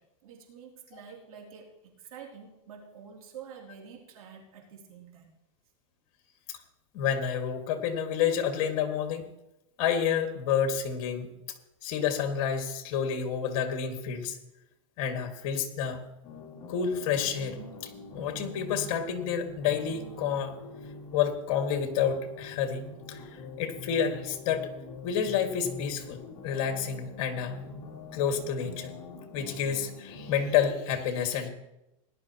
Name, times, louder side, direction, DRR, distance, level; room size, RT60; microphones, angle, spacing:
voice 1, 0.0-5.3, right 7 dB, 85° right, 0 dB, 3.1 m, -48 dB
voice 2, 6.9-9.3 9.8-11.3 11.8-14.4 15.0-16.0 16.7-20.5 21.1-24.7 25.0-27.6 28.1-28.9 29.3-31.5, left 7 dB, 50° left, 5 dB, 2.0 m, -29 dB
sound 1, 16.2-30.7, left 3 dB, 30° left, 2.7 m, -44 dB
19.0 x 11.0 x 3.0 m, 0.87 s
supercardioid pair, 150°, 17 cm